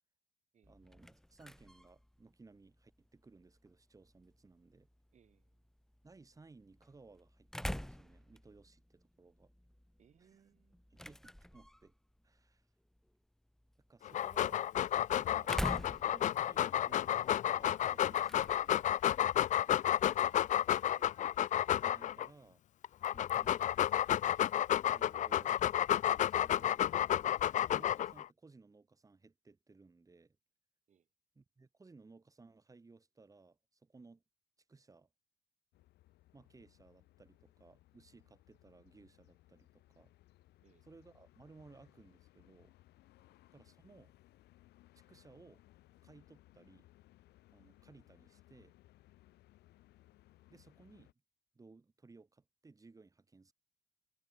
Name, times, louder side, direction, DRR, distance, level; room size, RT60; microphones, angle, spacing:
sound 1, 0.6-20.5, equal, 5° left, 2.9 m, -48 dB
voice 1, 0.7-4.9 6.0-9.5 10.2-10.5 10.9-11.9 12.2-12.7 13.9-14.6 15.1-15.6 16.0-18.9 21.8-22.6 23.0-23.7 24.8-25.6 26.2-26.8 27.7-30.4 31.3-34.2 34.7-35.1 36.3-40.1 40.8-42.7 43.5-44.1 44.9-45.6 46.0-46.9 47.5-48.8 50.5-51.1 51.5-53.5, right 3 dB, 20° right, 6.2 m, -60 dB
voice 2, 5.1-5.6 10.0-10.8 19.6-21.1 23.1-23.3 30.9-31.1 40.6-40.8 43.2-43.3, right 8 dB, 45° right, 5.4 m, -69 dB
Dog, 14.0-22.3 22.8-28.2, left 11 dB, 45° left, 0.5 m, -31 dB
sound 2, 35.7-51.1, left 16 dB, 80° left, 2.3 m, -65 dB
cardioid pair, 110°, 17 cm